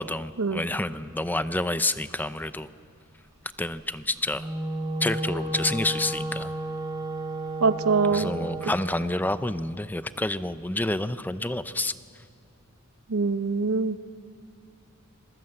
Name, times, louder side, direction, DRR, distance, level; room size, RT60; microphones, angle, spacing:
voice 1, 0.0-2.7 3.6-4.5 5.0-6.5 8.1-11.9, left 1 dB, 10° left, 12 dB, 0.6 m, -28 dB
Wind instrument woodwind instrument, 4.2-8.8, right 1 dB, 20° right, 3.1 m, -32 dB
voice 2, 7.6-8.3 13.1-14.0, right 4 dB, 80° right, 12 dB, 0.9 m, -23 dB
27.0 x 22.0 x 7.9 m, 2.4 s
head